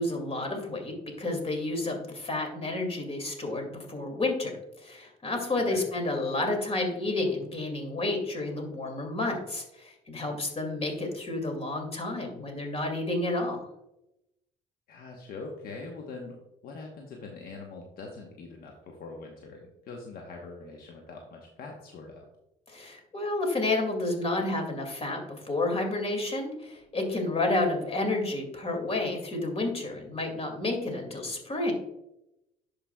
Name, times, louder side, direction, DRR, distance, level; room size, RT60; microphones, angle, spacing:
voice 1, 0.0-13.6 22.7-31.7, left 2 dB, 35° left, 3 dB, 2.3 m, -30 dB
voice 2, 14.9-22.3, left 3 dB, 65° left, 1 dB, 1.0 m, -43 dB
11.0 x 5.1 x 2.3 m, 0.87 s
supercardioid pair, 65°, 17 cm